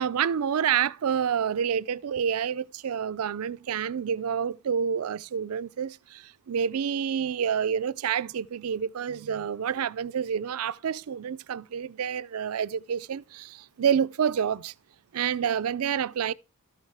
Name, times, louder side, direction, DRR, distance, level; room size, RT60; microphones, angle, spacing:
voice 1, 0.0-14.7 15.1-16.3, right 8 dB, 85° right, 0.4 m, -28 dB
12.5 x 6.5 x 4.8 m
head